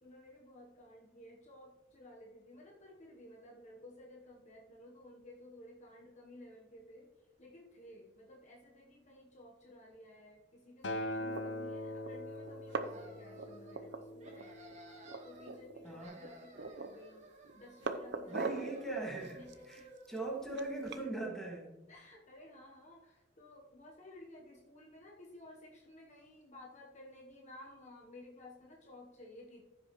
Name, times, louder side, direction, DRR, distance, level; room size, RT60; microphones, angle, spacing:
voice 1, 0.0-7.1 7.4-18.9 19.4-19.9 21.9-29.6, left 1 dB, 40° left, -1 dB, 1.1 m, -55 dB
Acoustic guitar, 10.8-15.1 16.0-16.1, left 1 dB, 80° left, 0.9 m, -42 dB
sound 1, 11.1-11.4 12.0-12.1 12.4-13.1 13.3-14.4 14.7-14.8 15.0-15.8 16.2-17.0 17.4-18.7 19.2-21.0, right 4 dB, 65° right, 0.7 m, -41 dB
sound 2, 12.7-13.8 14.2-15.6 15.8-18.0 18.3-20.3, right 1 dB, 40° right, 1.6 m, -56 dB
voice 2, 15.8-16.2 18.3-19.4 19.7-19.8 20.1-21.7, right 2 dB, ahead, -2 dB, 2.0 m, -40 dB
15.0 x 6.2 x 3.1 m, 1.1 s
head